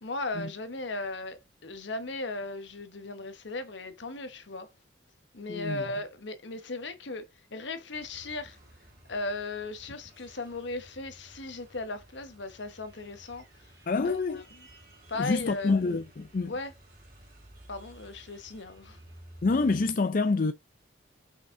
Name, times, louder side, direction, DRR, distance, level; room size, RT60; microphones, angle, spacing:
voice 1, 0.0-4.7 5.3-8.6 9.1-13.4 14.0-14.4 15.1-15.8 16.5-16.7 17.7-19.0, left 2 dB, 75° left, 1.2 m, -37 dB
voice 2, 5.5-5.8 13.9-14.4 15.2-16.5 19.4-20.5, left 3 dB, 45° left, 0.4 m, -27 dB
sound 1, 7.9-19.9, right 1 dB, 50° right, 3.3 m, -54 dB
5.7 x 5.2 x 3.7 m
head